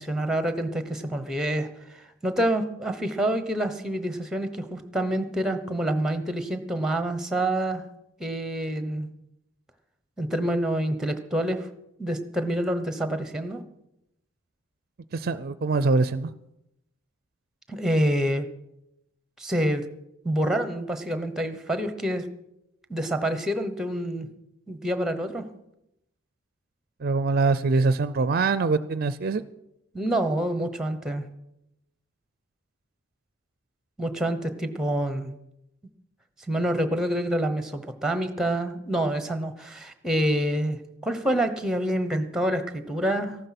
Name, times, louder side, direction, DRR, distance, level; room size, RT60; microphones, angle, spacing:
voice 1, 0.0-2.0 2.2-7.8 8.2-9.1 10.2-11.7 12.0-13.6 17.7-18.5 19.4-19.8 20.2-22.2 22.9-24.3 24.7-25.5 29.9-31.3 34.0-35.3 36.5-43.4, right 1 dB, 5° right, 10 dB, 1.0 m, -27 dB
voice 2, 15.1-16.3 27.0-29.4, right 3 dB, 45° right, 15 dB, 0.4 m, -23 dB
14.5 x 12.0 x 5.9 m, 0.84 s
head